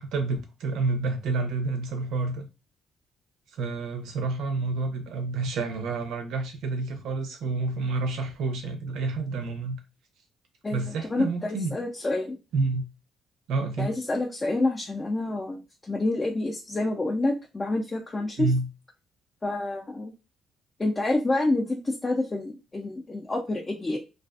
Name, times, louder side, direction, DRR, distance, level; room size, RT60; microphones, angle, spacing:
voice 1, 0.0-2.5 3.5-9.8 10.7-11.7 12.5-12.9 13.5-13.9 18.4-18.7, right 3 dB, 80° right, 0.6 m, -29 dB
voice 2, 10.6-12.4 13.8-18.5 19.4-20.1 20.8-24.0, left 2 dB, 20° left, 0.5 m, -28 dB
2.4 x 2.4 x 2.3 m
cardioid pair, 100°, 0 cm